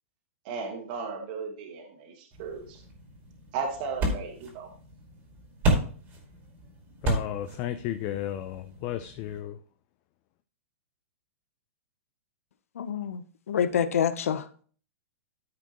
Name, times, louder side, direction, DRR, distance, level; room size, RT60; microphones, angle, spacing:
voice 1, 0.4-2.8 3.5-4.7, right 5 dB, 40° right, 1.6 m, -35 dB
sound 1, 2.3-9.4, right 1 dB, 20° right, 2.1 m, -33 dB
voice 2, 7.0-9.6, left 12 dB, 30° left, 0.4 m, -33 dB
voice 3, 12.8-14.5, left 8 dB, 90° left, 0.8 m, -27 dB
13.0 x 5.0 x 3.0 m
hypercardioid pair, 160°, 8 cm